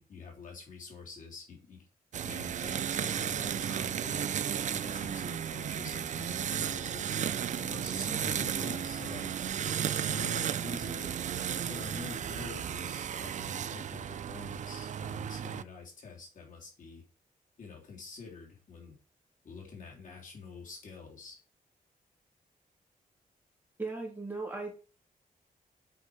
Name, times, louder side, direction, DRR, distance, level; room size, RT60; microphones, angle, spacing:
voice 1, 0.0-1.9 2.2-4.3 4.7-7.1 7.5-9.3 10.0-11.2 11.7-17.0 17.6-19.0 19.4-21.4, left 5 dB, 65° left, -2 dB, 3.4 m, -47 dB
sound 1, 2.1-15.6, right 9 dB, 55° right, 0.4 m, -34 dB
voice 2, 23.8-24.7, right 3 dB, 10° right, -1 dB, 3.0 m, -37 dB
8.6 x 5.2 x 5.0 m, 0.36 s
wide cardioid pair, 135°, 15 cm